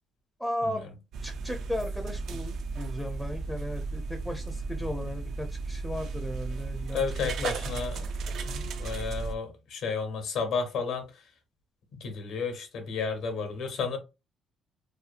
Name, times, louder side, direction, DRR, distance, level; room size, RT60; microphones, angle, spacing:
voice 1, 0.4-0.8 1.2-7.0 7.4-7.5, left 1 dB, 5° left, 0.5 m, -35 dB
sound 1, 1.1-9.4, right 4 dB, 65° right, 0.3 m, -35 dB
voice 2, 6.9-8.1 8.3-11.3 11.9-14.0, left 5 dB, 70° left, 0.9 m, -32 dB
2.7 x 2.3 x 2.4 m
cardioid pair, 95°, 0 cm